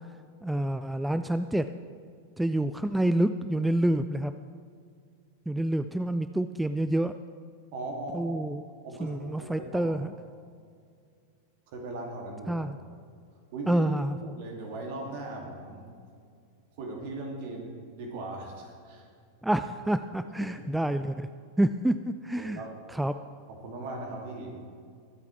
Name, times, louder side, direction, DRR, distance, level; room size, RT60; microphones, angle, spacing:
voice 1, 0.4-1.7 2.4-4.3 5.5-7.1 8.1-8.6 9.0-10.1 12.5-12.8 13.7-14.4 19.4-21.3 21.6-22.6 22.9-23.2, right 1 dB, 5° right, 11 dB, 0.3 m, -28 dB
voice 2, 7.7-8.5 8.8-9.9 11.7-12.6 13.5-13.8 14.4-15.8 16.8-19.1 20.4-20.5 22.4-22.7 23.5-24.6, right 2 dB, 50° right, 1 dB, 2.5 m, -38 dB
22.5 x 8.4 x 3.3 m, 2.2 s
figure-of-eight pair, 90°, 0 cm